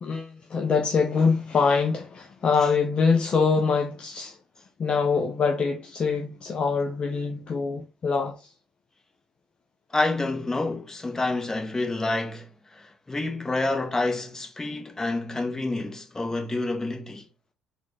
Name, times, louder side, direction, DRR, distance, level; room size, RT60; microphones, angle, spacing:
voice 1, 0.0-4.3 4.8-8.4, left 5 dB, 40° left, 0.5 m, -24 dB
voice 2, 9.9-17.2, left 2 dB, 20° left, 1.1 m, -28 dB
3.6 x 2.4 x 3.2 m
hypercardioid pair, 55°, 3 cm